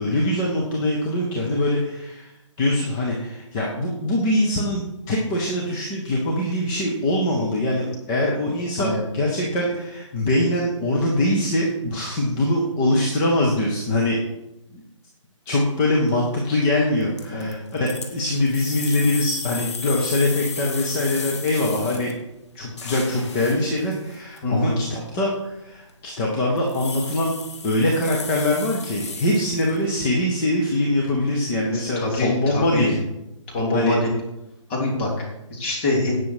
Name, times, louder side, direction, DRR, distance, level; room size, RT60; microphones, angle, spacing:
voice 1, 0.0-2.3 2.6-14.2 14.7-14.8 15.5-22.1 22.5-27.3 27.6-33.0 33.7-34.0, left 1 dB, 5° left, -3 dB, 0.3 m, -23 dB
sound 1, 16.0-16.3 17.0-22.1 22.4-24.4 25.0-25.1 25.5-25.9 26.2-26.3 26.6-29.9, left 5 dB, 55° left, 2.2 m, -34 dB
voice 2, 24.4-24.8 32.0-32.9 33.5-34.1 34.7-36.2, left 2 dB, 20° left, -3 dB, 3.2 m, -24 dB
17.5 x 6.2 x 4.7 m, 0.92 s
hypercardioid pair, 165°, 17 cm